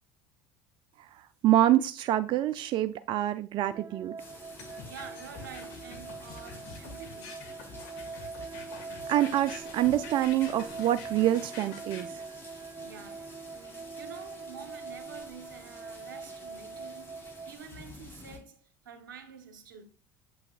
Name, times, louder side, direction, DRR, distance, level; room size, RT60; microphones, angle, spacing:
voice 1, 1.1-4.2 9.1-12.2, right 13 dB, 50° right, 0.4 m, -26 dB
sound 1, 3.7-17.6, right 4 dB, 25° right, 0.8 m, -43 dB
sound 2, 4.2-18.4, left 2 dB, 20° left, 4.2 m, -51 dB
sound 3, 4.6-12.0, left 5 dB, 75° left, 1.7 m, -46 dB
voice 2, 4.8-7.4 12.8-19.9, right 7 dB, 90° right, 1.1 m, -48 dB
7.5 x 6.2 x 2.4 m
hypercardioid pair, 80°, 10 cm